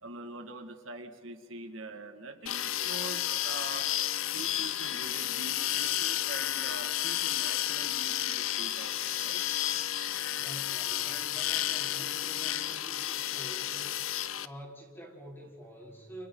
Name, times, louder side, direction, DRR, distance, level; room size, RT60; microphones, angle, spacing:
voice 1, 0.0-3.9 4.3-9.4, right 2 dB, 70° right, 4 dB, 2.1 m, -44 dB
sound 1, 2.5-14.5, left 12 dB, 70° left, 0.6 m, -32 dB
voice 2, 10.4-14.1 14.4-16.3, equal, 10° left, -1 dB, 4.3 m, -47 dB
29.5 x 28.5 x 4.0 m, 1.5 s
head